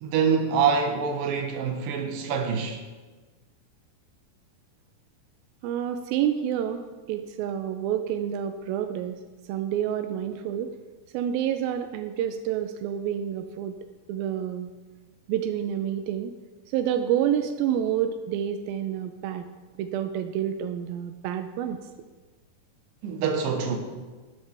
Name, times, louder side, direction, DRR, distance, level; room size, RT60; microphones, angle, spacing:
voice 1, 0.0-2.8 23.0-23.8, right 6 dB, 75° right, 2.8 m, -25 dB
voice 2, 5.6-9.1 9.5-10.7 11.1-13.7 14.1-14.7 15.3-16.3 16.7-19.5 19.8-21.8, right 10 dB, 90° right, 2.5 m, -28 dB
14.5 x 12.5 x 3.4 m
omnidirectional pair, 4.1 m